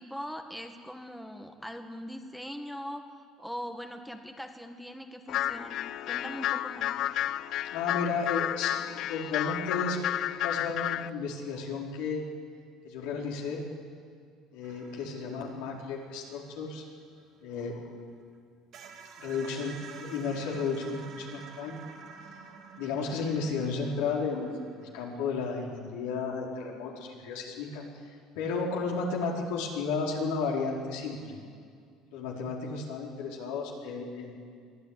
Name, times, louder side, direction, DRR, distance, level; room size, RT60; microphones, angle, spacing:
voice 1, 0.0-3.1 3.4-6.9, equal, ahead, 5 dB, 1.7 m, -41 dB
sound 1, 5.3-11.1, left 12 dB, 60° left, 0.5 m, -31 dB
voice 2, 7.7-12.2 12.8-13.6 14.5-16.8 17.4-17.8 19.2-21.8 22.8-27.8 28.3-31.4 32.1-34.4, left 4 dB, 85° left, -2 dB, 4.6 m, -33 dB
sound 2, 14.6-18.0 18.3-18.4 18.7-25.5, right 6 dB, 55° right, 2.7 m, -50 dB
23.0 x 13.5 x 9.9 m, 2.2 s
supercardioid pair, 110°, 0 cm